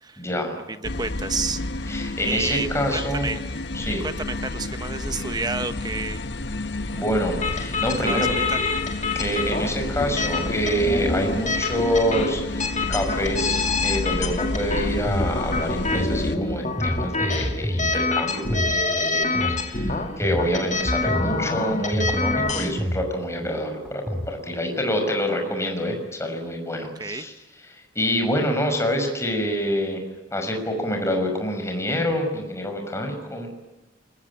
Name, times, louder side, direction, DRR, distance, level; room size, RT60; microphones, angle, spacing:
voice 1, 0.2-0.5 1.9-3.3 3.7-4.0 6.9-8.3 9.1-27.3 27.6-30.0 30.3-33.5, equal, 15° left, 4 dB, 5.9 m, -26 dB
voice 2, 0.7-3.5 4.0-6.2 8.0-8.4 27.0-27.3, right 4 dB, 20° right, 10 dB, 1.2 m, -30 dB
sound 1, 0.8-16.4, left 2 dB, 65° left, 1.3 m, -30 dB
sound 2, 7.4-22.7, left 3 dB, 40° left, 2.7 m, -27 dB
sound 3, 14.5-24.3, equal, ahead, 2.4 m, -30 dB
27.5 x 21.5 x 8.6 m, 1.0 s
head